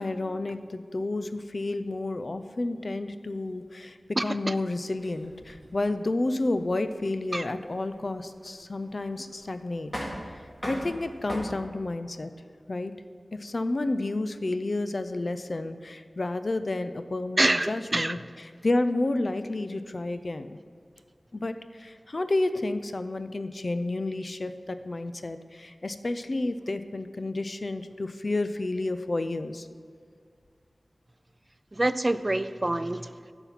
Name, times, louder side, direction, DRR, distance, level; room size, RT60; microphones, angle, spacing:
voice 1, 0.0-9.9 10.6-12.3 12.7-12.9 13.3-20.6 21.3-29.7, left 2 dB, 55° left, 10 dB, 0.4 m, -30 dB
sound 1, 4.9-11.4, equal, 15° left, 2.1 m, -41 dB
voice 2, 17.4-18.1 31.8-33.0, right 1 dB, 30° right, 13 dB, 0.3 m, -25 dB
10.0 x 5.8 x 4.0 m, 2.2 s
wide cardioid pair, 60°, 0 cm